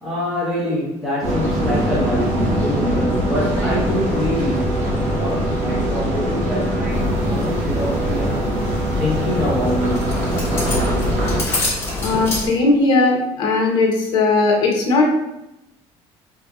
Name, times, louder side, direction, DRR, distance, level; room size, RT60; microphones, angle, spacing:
voice 1, 0.0-8.5 9.0-10.3, left 1 dB, ahead, -9 dB, 1.1 m, -25 dB
sound 1, 1.2-11.4, right 1 dB, 65° right, 0.8 m, -21 dB
sound 2, 6.9-12.5, left 2 dB, 20° left, 1.3 m, -27 dB
voice 2, 12.0-15.0, left 3 dB, 40° left, 0 dB, 0.8 m, -17 dB
4.4 x 2.6 x 2.4 m, 0.89 s
cardioid pair, 165°, 12 cm